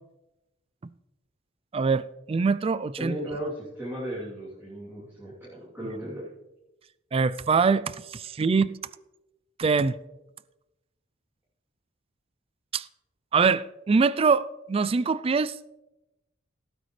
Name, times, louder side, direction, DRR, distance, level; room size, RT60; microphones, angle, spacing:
voice 1, 1.7-3.2 7.1-7.8 8.1-8.7 9.6-10.0 12.7-12.8 13.3-15.5, right 5 dB, 30° right, 0.3 m, -23 dB
voice 2, 3.0-6.3, right 1 dB, 10° right, 3.1 m, -35 dB
16.0 x 9.2 x 3.2 m
head